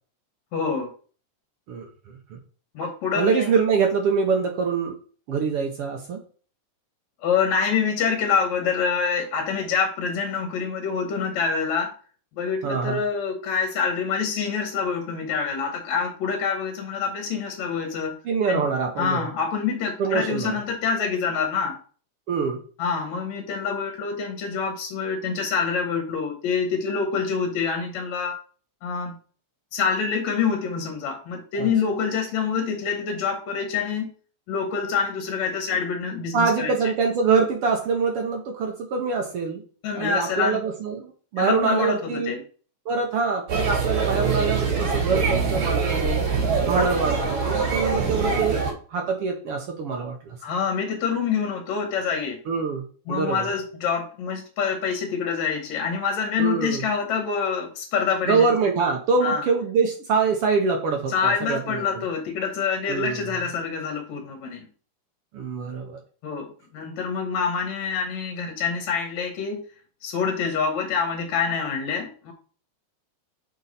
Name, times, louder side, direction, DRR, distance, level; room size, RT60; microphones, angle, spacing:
voice 1, 0.5-0.9 2.8-3.5 7.2-11.9 12.4-18.2 18.5-18.6 19.0-21.8 22.8-28.4 28.8-29.2 29.7-34.1 34.5-36.7 39.8-40.6 41.4-42.4 50.4-52.4 53.1-58.5 59.2-59.4 61.1-64.7 66.2-69.6 70.0-72.3, left 6 dB, 75° left, 4 dB, 2.3 m, -26 dB
voice 2, 3.2-4.9 5.3-6.2 12.6-13.0 18.2-19.3 20.0-20.6 22.3-22.6 31.6-31.7 36.3-39.6 39.9-42.4 42.9-46.2 46.6-48.6 48.9-50.4 52.5-53.5 56.4-56.8 58.3-61.8 62.9-63.3 65.3-66.0, right 5 dB, 65° right, 2 dB, 1.6 m, -24 dB
sound 1, 43.5-48.7, right 5 dB, 80° right, 4.0 m, -24 dB
6.8 x 4.6 x 4.0 m, 0.41 s
omnidirectional pair, 3.4 m